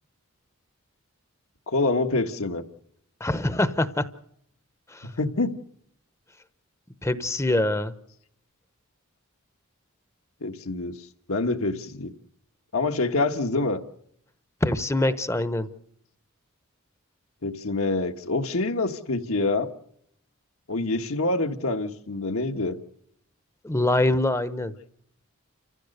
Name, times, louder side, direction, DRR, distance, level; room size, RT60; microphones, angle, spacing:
voice 1, 1.7-2.6 5.2-5.5 10.4-12.1 12.7-13.8 17.4-19.7 20.7-22.8, left 2 dB, 75° left, 1.5 m, -26 dB
voice 2, 3.2-4.1 4.9-5.1 7.0-7.9 14.6-15.7 23.6-24.7, left 1 dB, 15° left, 0.8 m, -24 dB
29.5 x 15.5 x 6.7 m
head